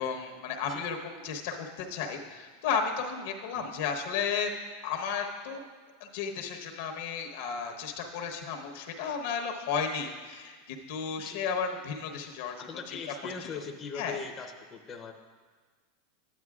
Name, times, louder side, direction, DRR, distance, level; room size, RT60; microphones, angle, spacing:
voice 1, 0.0-4.5 4.8-5.6 6.0-13.0 13.5-13.6 13.9-14.2, left 6 dB, 70° left, 3 dB, 1.0 m, -33 dB
voice 2, 12.6-15.1, left 5 dB, 20° left, 2 dB, 0.7 m, -40 dB
12.0 x 9.4 x 2.4 m, 1.5 s
supercardioid pair, 135°, 0 cm